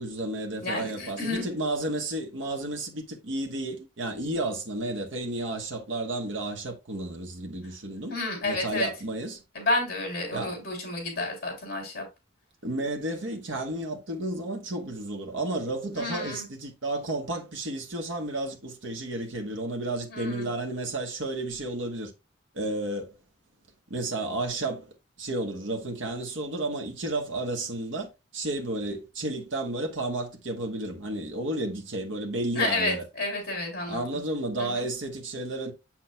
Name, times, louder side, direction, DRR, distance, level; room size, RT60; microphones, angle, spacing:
voice 1, 0.0-8.2 8.4-9.4 10.3-10.6 12.6-22.1 22.5-23.2 23.9-24.9 25.2-33.1 33.9-35.7, right 2 dB, 70° right, 1.2 m, -32 dB
voice 2, 0.6-1.5 8.1-8.9 9.5-12.1 15.9-16.5 20.1-20.5 32.5-34.2 34.6-34.9, left 2 dB, 50° left, 3.1 m, -30 dB
7.4 x 6.0 x 2.2 m
head